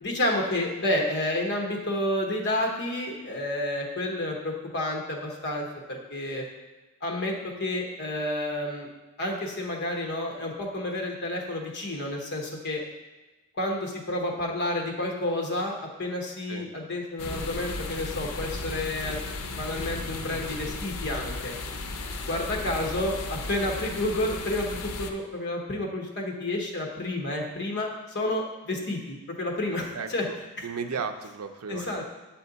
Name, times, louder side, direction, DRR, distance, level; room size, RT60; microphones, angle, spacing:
voice 1, 0.0-6.4 7.0-8.9 9.2-12.8 13.6-19.2 19.6-21.6 22.3-27.9 28.1-30.3 30.6-30.7 31.7-32.0, left 1 dB, 50° left, 1 dB, 1.1 m, -30 dB
sound 1, 17.2-25.1, left 3 dB, 80° left, 0.6 m, -35 dB
voice 2, 29.9-30.4 30.6-32.0, right 5 dB, 75° right, 7 dB, 0.5 m, -35 dB
7.5 x 4.3 x 4.0 m, 1.2 s
head